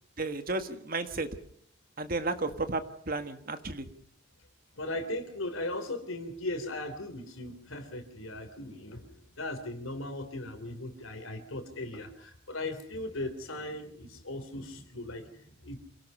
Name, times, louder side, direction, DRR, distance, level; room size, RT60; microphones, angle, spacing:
voice 1, 0.2-1.3 2.0-3.9, right 3 dB, 45° right, 8 dB, 1.7 m, -33 dB
voice 2, 4.7-15.8, left 2 dB, 80° left, 8 dB, 3.5 m, -38 dB
27.5 x 18.0 x 5.6 m, 0.63 s
head